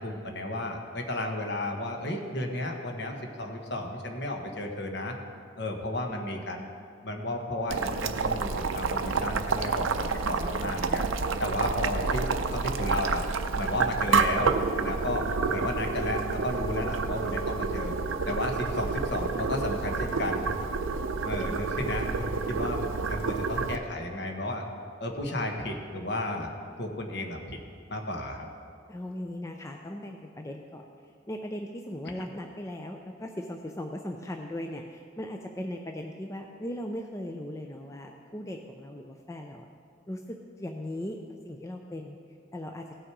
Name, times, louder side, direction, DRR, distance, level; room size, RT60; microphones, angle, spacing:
voice 1, 0.0-5.1 5.6-6.7 7.0-11.1 11.4-13.3 13.6-14.5 14.8-17.9 18.3-20.4 21.2-24.7 25.0-26.5 26.8-27.6 27.9-28.5 32.2-32.3, left 1 dB, 55° left, 2 dB, 1.3 m, -33 dB
Boiling, 7.7-23.8, right 4 dB, 80° right, 0.6 m, -29 dB
voice 2, 28.9-30.8 31.3-39.7 40.1-41.2 41.4-42.2 42.5-42.8, left 1 dB, 15° left, 3 dB, 0.4 m, -38 dB
17.0 x 6.3 x 4.7 m, 2.4 s
head